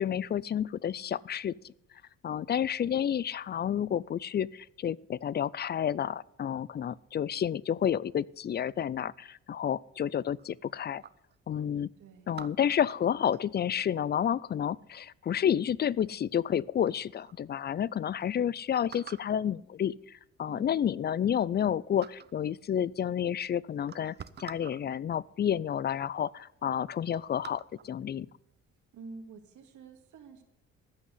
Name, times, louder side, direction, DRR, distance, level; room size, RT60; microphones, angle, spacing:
voice 1, 0.0-1.7 2.2-11.0 11.5-11.9 12.3-28.3, left 9 dB, 35° left, 0.4 m, -30 dB
sound 1, 10.4-11.4 12.3-13.8 15.4-15.8 16.5-16.6 16.8-17.4 17.9-18.0 18.2-18.3 18.9-19.4 20.4-20.5 20.9-21.7 22.0-22.4 23.3-23.4 23.8-24.8 25.7-25.8 26.1-26.4 26.7-28.0 28.5-28.7, right 8 dB, 35° right, 0.6 m, -49 dB
voice 2, 12.0-12.4 20.5-20.8 28.9-30.4, right 4 dB, 75° right, 2.1 m, -48 dB
14.0 x 6.3 x 9.3 m
cardioid pair, 90°, 30 cm